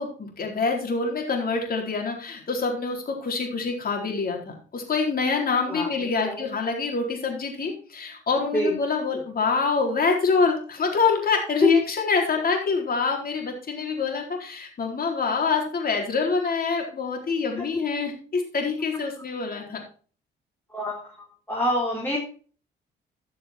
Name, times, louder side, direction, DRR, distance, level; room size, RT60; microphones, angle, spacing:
voice 1, 0.0-19.8, left 4 dB, 50° left, 2 dB, 4.1 m, -25 dB
voice 2, 5.7-6.5 8.5-8.8 11.6-11.7 17.6-17.7 20.7-22.2, equal, 10° left, -4 dB, 3.7 m, -27 dB
14.0 x 6.6 x 4.5 m, 0.40 s
cardioid pair, 90°, 20 cm